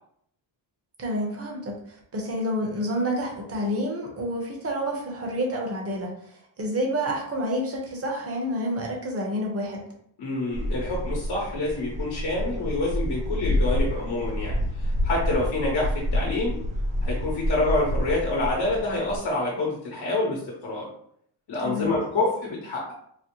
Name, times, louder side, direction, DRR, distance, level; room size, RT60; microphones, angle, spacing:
voice 1, 1.0-9.8 21.6-22.0, equal, 30° right, 0 dB, 0.9 m, -29 dB
voice 2, 10.2-16.6 17.0-20.9 21.5-22.9, left 2 dB, 55° left, -3 dB, 1.0 m, -27 dB
sound 1, 10.5-19.2, equal, 15° right, 0.4 m, -28 dB
4.1 x 2.0 x 3.0 m, 0.68 s
wide cardioid pair, 140°, 45 cm